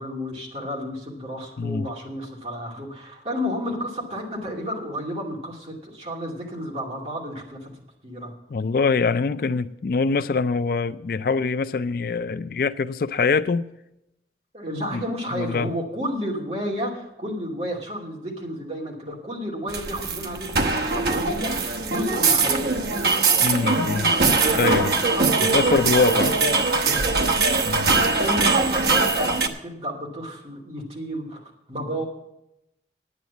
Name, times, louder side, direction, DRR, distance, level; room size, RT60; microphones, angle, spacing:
voice 1, 0.0-7.7 8.0-8.3 14.5-22.8 24.4-25.8 26.3-26.5 26.8-27.2 28.2-32.0, equal, 35° right, 2.6 m, -31 dB
voice 2, 8.5-13.7 14.9-15.0 15.3-15.7 23.4-24.2 24.5-24.9 25.5-26.3 27.7-28.0, left 4 dB, 55° left, 0.4 m, -23 dB
sound 1, 19.7-29.5, right 3 dB, 60° right, 1.0 m, -21 dB
9.4 x 9.4 x 7.1 m
head